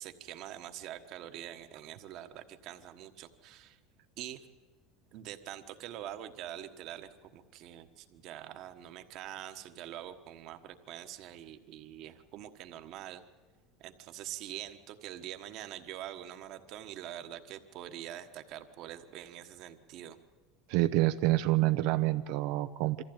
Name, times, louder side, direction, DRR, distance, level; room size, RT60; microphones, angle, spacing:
voice 1, 0.0-3.8 4.2-4.4 5.1-13.2 13.8-20.2, right 12 dB, 45° right, 9 dB, 1.3 m, -45 dB
voice 2, 20.7-23.0, right 17 dB, 60° right, 10 dB, 0.6 m, -27 dB
23.5 x 14.5 x 8.9 m, 1.4 s
supercardioid pair, 155°, 0 cm